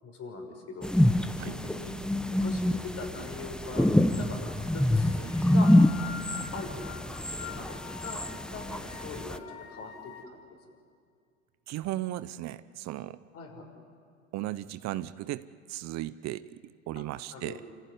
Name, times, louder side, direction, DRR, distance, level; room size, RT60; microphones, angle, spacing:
voice 1, 0.0-1.9 2.4-3.9 4.2-5.7 6.5-8.2 8.5-10.6 13.3-13.6 17.0-17.1 17.3-17.6, left 3 dB, 45° left, 2 dB, 5.9 m, -42 dB
sound 1, 0.8-9.4, left 1 dB, ahead, 0.9 m, -26 dB
sound 2, 5.0-10.3, left 8 dB, 80° left, 2.3 m, -45 dB
voice 2, 11.7-13.2 14.3-17.6, right 15 dB, 50° right, 15 dB, 0.8 m, -36 dB
27.5 x 15.0 x 9.9 m, 2.2 s
hypercardioid pair, 80°, 34 cm